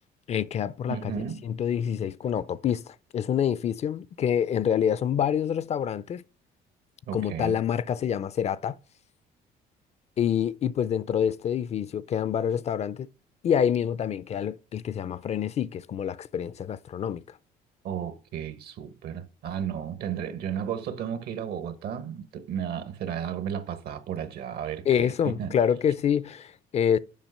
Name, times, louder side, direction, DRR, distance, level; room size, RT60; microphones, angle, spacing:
voice 1, 0.3-6.2 7.1-8.8 10.2-13.1 13.4-17.4 24.9-27.0, left 8 dB, 40° left, 0.4 m, -27 dB
voice 2, 0.9-1.4 7.1-7.6 17.8-25.6, right 8 dB, 70° right, 1.1 m, -34 dB
7.3 x 5.7 x 5.5 m
cardioid pair, 110°, 17 cm